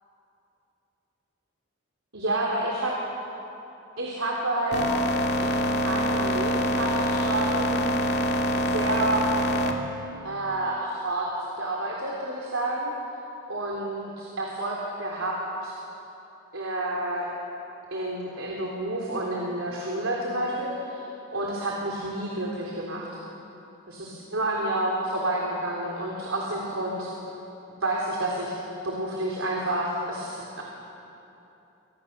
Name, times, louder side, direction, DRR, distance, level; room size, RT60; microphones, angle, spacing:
voice 1, 2.1-2.9 4.0-4.9 5.4-7.9 8.5-9.3 10.2-11.3 11.6-12.9 13.5-15.7 16.5-17.3 17.9-23.1 23.9-27.1 27.8-28.5 28.8-30.6, right 1 dB, 75° right, -2 dB, 3.6 m, -29 dB
sound 1, 4.7-9.7, equal, 50° left, 2.6 m, -25 dB
28.5 x 26.0 x 6.8 m, 3.0 s
head